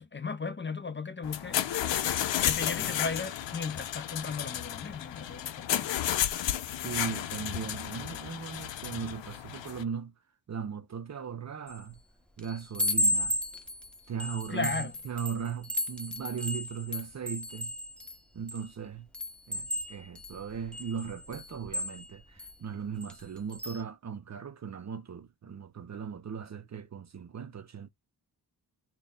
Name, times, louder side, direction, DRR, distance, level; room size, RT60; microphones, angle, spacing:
voice 1, 0.0-1.6 2.4-5.9 14.5-14.9, left 4 dB, 25° left, 0.5 m, -36 dB
sound 1, 1.2-9.8, left 11 dB, 85° left, 0.6 m, -32 dB
voice 2, 6.6-10.1 10.5-12.0 12.4-13.4 14.1-17.7 18.3-19.1 19.5-27.9, right 7 dB, 40° right, 0.6 m, -38 dB
Chime, 11.7-12.0 12.4-18.7 19.1-22.5 23.0-23.2 23.5-23.8, left 1 dB, ahead, 0.9 m, -34 dB
4.0 x 2.2 x 3.6 m
cardioid pair, 65°, 43 cm